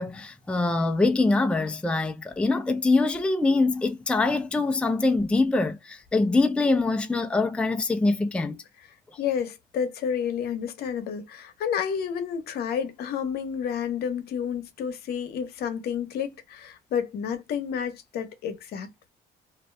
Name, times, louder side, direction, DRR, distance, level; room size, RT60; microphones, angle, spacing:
voice 1, 0.0-8.6, left 3 dB, 5° left, 0.4 m, -24 dB
voice 2, 9.2-19.1, left 7 dB, 70° left, 0.8 m, -30 dB
2.5 x 2.2 x 3.2 m
cardioid pair, 110°, 17 cm